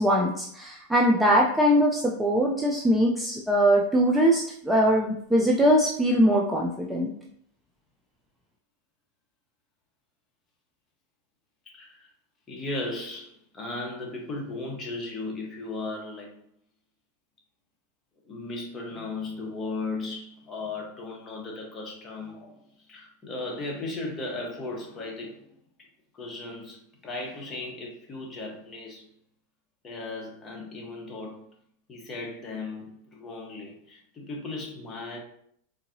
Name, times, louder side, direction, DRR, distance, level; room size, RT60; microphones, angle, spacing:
voice 1, 0.0-7.1, equal, 5° right, -2 dB, 0.4 m, -22 dB
voice 2, 11.7-12.1 12.5-16.3 18.2-25.5 26.1-29.1 29.8-31.5 31.9-35.2, left 2 dB, 25° left, -1 dB, 1.1 m, -36 dB
3.7 x 2.8 x 2.7 m, 0.66 s
hypercardioid pair, 115°, 0 cm